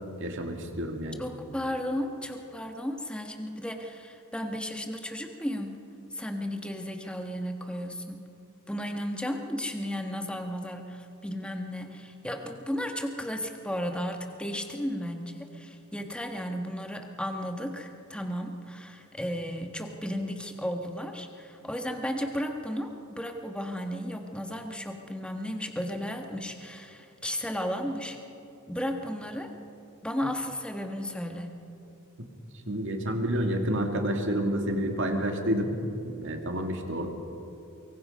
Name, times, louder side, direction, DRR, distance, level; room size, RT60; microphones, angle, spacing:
voice 1, 0.2-1.2 32.2-32.3 32.7-35.7 36.0-37.1, equal, 60° right, 4 dB, 2.3 m, -29 dB
voice 2, 1.2-5.8 6.1-8.2 8.7-28.2 28.7-29.5 30.0-31.6, equal, 5° left, 4 dB, 1.4 m, -34 dB
23.5 x 23.5 x 5.4 m, 2.8 s
head